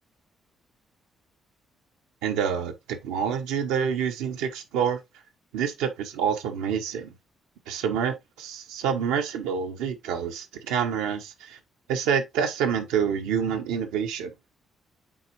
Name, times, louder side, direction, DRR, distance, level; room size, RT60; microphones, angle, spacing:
voice 1, 2.2-5.0 5.5-7.1 7.7-11.6 11.9-14.3, right 7 dB, 80° right, 1.0 m, -27 dB
7.5 x 4.4 x 2.9 m
hypercardioid pair, 45°, 0 cm